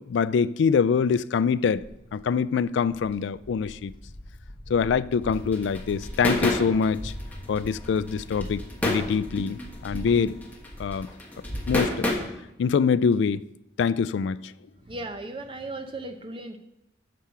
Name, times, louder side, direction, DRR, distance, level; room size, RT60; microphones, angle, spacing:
voice 1, 0.0-1.8 2.1-3.9 4.7-7.1 7.5-10.4 10.8-11.1 11.7-12.1 12.6-13.4 13.8-14.5, left 6 dB, 75° left, 0.3 m, -24 dB
Walk footsteps, 1.7-9.4, left 1 dB, 25° left, 0.6 m, -44 dB
sound 1, 5.2-12.1, left 1 dB, 10° left, 1.2 m, -30 dB
voice 2, 14.8-16.6, right 2 dB, 25° right, 0.7 m, -36 dB
8.3 x 5.8 x 5.7 m
head